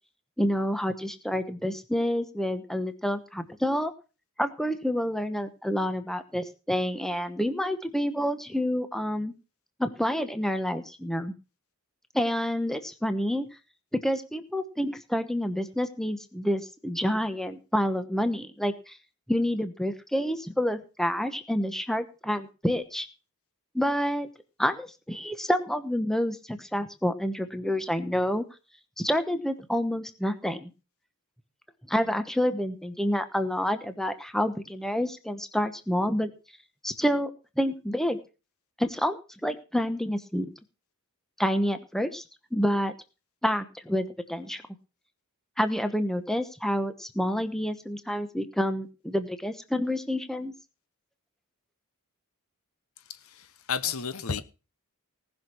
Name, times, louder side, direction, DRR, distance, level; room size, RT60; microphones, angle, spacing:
voice 1, 0.4-3.9 4.4-9.3 9.8-11.3 12.1-13.5 13.9-19.0 19.3-23.1 23.7-24.3 24.6-28.4 29.0-30.7 31.9-36.3 36.8-37.3 37.6-38.2 38.8-40.5 41.4-42.2 42.5-42.9 43.4-44.6 45.6-50.5, equal, ahead, 1.0 m, -28 dB
voice 2, 53.1-54.4, left 6 dB, 70° left, 1.0 m, -32 dB
18.5 x 6.3 x 6.1 m
head